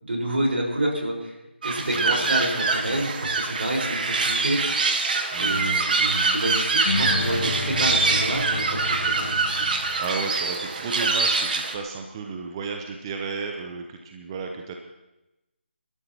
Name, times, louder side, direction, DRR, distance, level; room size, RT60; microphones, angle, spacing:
voice 1, 0.0-1.3 1.6-4.6 5.4-9.7, right 1 dB, 70° right, -1 dB, 4.9 m, -28 dB
sound 1, 1.6-11.7, right 4 dB, 50° right, 1.5 m, -24 dB
voice 2, 1.8-2.4 5.3-5.8 10.0-14.8, right 4 dB, 25° right, 3 dB, 0.8 m, -33 dB
sound 2, 6.9-10.5, left 3 dB, 55° left, 1.0 m, -31 dB
27.5 x 12.5 x 3.0 m, 0.98 s
figure-of-eight pair, 160°, 6 cm